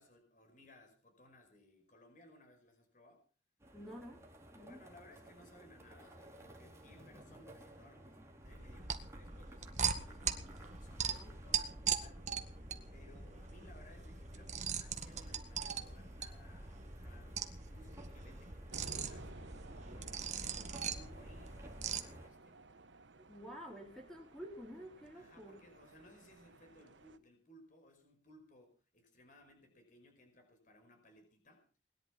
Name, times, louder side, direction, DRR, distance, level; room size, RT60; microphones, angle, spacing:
voice 1, 0.0-3.2 4.6-12.3 12.9-19.3 19.9-22.6 25.1-31.7, left 1 dB, 45° left, 5 dB, 5.2 m, -62 dB
sound 1, 3.6-22.3, right 1 dB, 15° right, 3.5 m, -57 dB
voice 2, 3.7-4.2 4.5-4.8 11.0-11.4 23.3-25.6, equal, ahead, 1 dB, 4.2 m, -50 dB
sound 2, 8.4-22.0, right 7 dB, 40° right, 1.8 m, -41 dB
sound 3, 18.7-27.2, right 2 dB, 75° right, 1.4 m, -55 dB
21.5 x 11.0 x 5.9 m, 0.39 s
head